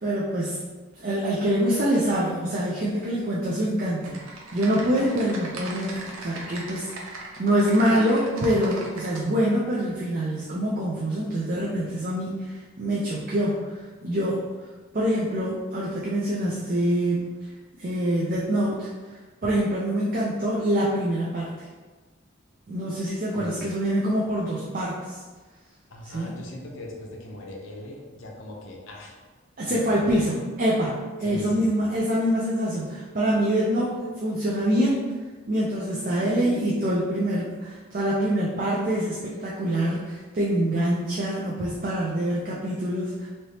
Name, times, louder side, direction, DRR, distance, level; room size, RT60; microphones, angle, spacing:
voice 1, 0.0-0.6 1.0-13.7 14.0-14.4 14.9-17.3 17.8-18.9 19.4-21.6 22.7-25.2 26.1-26.4 29.6-35.0 35.5-43.3, right 1 dB, 40° right, -5 dB, 0.4 m, -25 dB
Typing, 4.0-9.2, right 3 dB, 85° right, 0.7 m, -39 dB
voice 2, 23.3-23.7 25.9-29.2 29.7-30.2 31.2-31.7, left 1 dB, 70° left, -1 dB, 0.6 m, -39 dB
3.2 x 2.9 x 2.8 m, 1.3 s
head